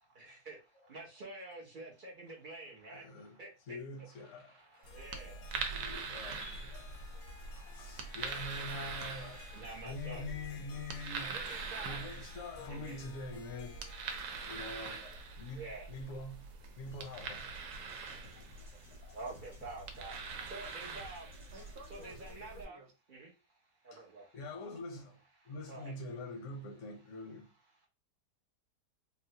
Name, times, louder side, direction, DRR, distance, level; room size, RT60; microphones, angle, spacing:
voice 1, 0.0-5.4 5.6-6.5 6.9-8.2 9.5-10.3 11.2-12.0 12.7-13.0 13.3-13.4 13.7-13.8 14.3-16.0 17.5-21.5 21.9-22.8 23.1-24.4 25.4-25.9, right 2 dB, 60° right, 0.5 m, -50 dB
voice 2, 2.9-3.4 3.7-4.6 5.3-7.0 7.6-11.4 11.8-13.8 14.4-16.4 16.8-17.5 18.3-19.2 23.9-24.0 24.3-25.2 25.4-27.5, left 2 dB, 65° left, 0.8 m, -45 dB
Harp, 4.6-15.1, left 6 dB, 80° left, 1.1 m, -57 dB
sound 1, 4.8-22.7, right 4 dB, 85° right, 1.2 m, -44 dB
sound 2, 16.9-22.3, right 1 dB, 5° right, 0.4 m, -57 dB
voice 3, 21.5-22.9, right 1 dB, 45° right, 1.1 m, -54 dB
3.8 x 2.0 x 2.7 m
omnidirectional pair, 1.8 m